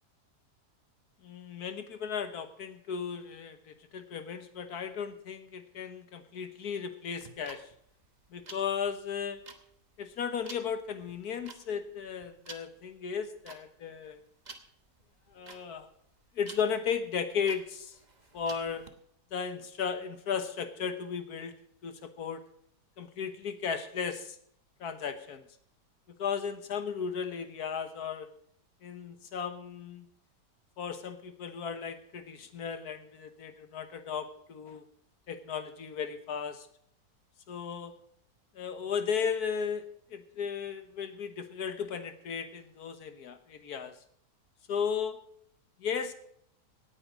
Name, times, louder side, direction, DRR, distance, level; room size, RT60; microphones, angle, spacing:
voice 1, 1.2-7.7 8.3-9.4 10.0-14.2 15.3-15.9 16.4-18.0 18.3-18.8 19.3-21.5 21.8-22.4 23.0-24.4 24.8-25.4 26.2-28.3 28.8-30.1 30.8-34.8 35.3-36.7 37.5-37.9 38.6-39.9 40.1-44.0 44.7-45.2 45.8-46.1, left 6 dB, 65° left, 9 dB, 1.6 m, -35 dB
sound 1, 7.1-18.9, right 3 dB, 30° right, 1.1 m, -51 dB
17.5 x 8.6 x 5.1 m, 0.67 s
omnidirectional pair, 1.8 m